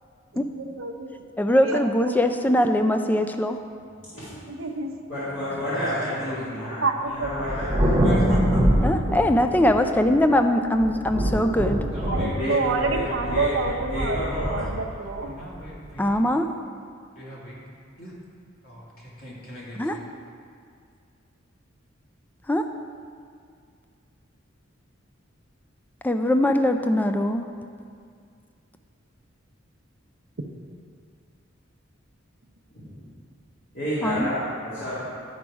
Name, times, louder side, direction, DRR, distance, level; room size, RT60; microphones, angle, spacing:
voice 1, 0.3-1.1 1.6-2.6 4.5-4.9 6.8-7.3 12.1-15.3, right 3 dB, 70° right, 3 dB, 0.7 m, -28 dB
voice 2, 1.4-3.6 8.8-11.8 16.0-16.5 19.8-19.9 22.5-22.6 26.0-27.5 34.0-34.3, left 1 dB, 10° left, 7 dB, 0.3 m, -21 dB
voice 3, 4.1-4.4 5.1-8.0 12.4-12.5 12.8-13.0 13.3-13.5 13.9-14.6 32.7-33.0 33.7-35.0, left 1 dB, 65° left, -12 dB, 2.1 m, -30 dB
voice 4, 5.5-6.5 8.0-8.7 11.9-13.8 14.3-16.2 17.1-17.6 18.0-18.1 18.6-20.0, equal, 50° left, -7 dB, 2.1 m, -38 dB
Thunder, 7.2-10.3 10.8-16.1, equal, 20° right, 1.0 m, -25 dB
11.0 x 5.1 x 4.8 m, 2.2 s
head